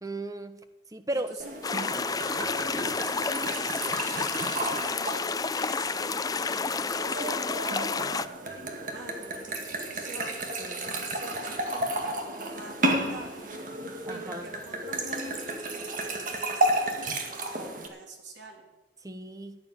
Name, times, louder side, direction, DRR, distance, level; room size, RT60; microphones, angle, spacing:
voice 1, 0.0-0.6 0.9-1.3 10.6-11.0 14.0-14.5 19.0-19.6, right 1 dB, 20° right, 10 dB, 1.0 m, -35 dB
voice 2, 1.1-13.5 14.1-18.7, right 3 dB, 75° right, 1 dB, 3.2 m, -48 dB
sound 1, 1.4-17.9, right 1 dB, 45° right, 1.9 m, -33 dB
sound 2, 1.6-8.3, left 4 dB, 20° left, 0.4 m, -30 dB
14.5 x 9.5 x 7.6 m, 1.0 s
head